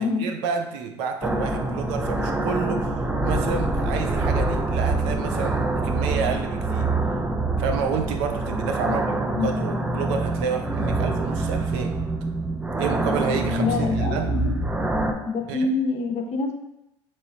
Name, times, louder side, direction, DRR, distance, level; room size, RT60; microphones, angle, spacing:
voice 1, 0.0-6.9 7.6-12.0 12.8-14.3 15.5-15.7, right 6 dB, 70° right, 5 dB, 0.5 m, -30 dB
sound 1, 1.2-15.1, right 2 dB, 10° right, 0.4 m, -25 dB
voice 2, 13.6-14.5 15.3-16.5, left 4 dB, 45° left, 4 dB, 0.7 m, -26 dB
3.1 x 3.0 x 3.8 m, 0.86 s
hypercardioid pair, 75°, 15 cm